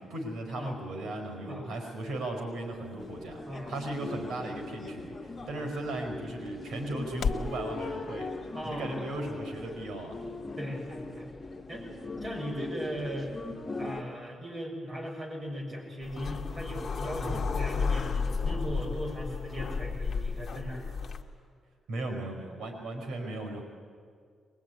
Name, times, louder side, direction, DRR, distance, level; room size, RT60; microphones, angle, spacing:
voice 1, 0.0-3.4 3.7-8.3 8.6-10.2 17.2-17.4 21.9-23.6, right 2 dB, 75° right, 3 dB, 4.9 m, -36 dB
sound 1, 1.3-7.6, left 6 dB, 65° left, 1.0 m, -41 dB
sound 2, 3.0-14.0, left 3 dB, 25° left, 2.8 m, -40 dB
voice 2, 8.5-9.0 10.6-11.3 11.7-11.8 12.2-13.3 13.8-21.0, equal, 30° right, -2 dB, 6.5 m, -38 dB
sound 3, 16.0-21.2, left 5 dB, 40° left, 1.7 m, -32 dB
22.5 x 21.5 x 9.6 m, 2.1 s
wide cardioid pair, 145°, 0 cm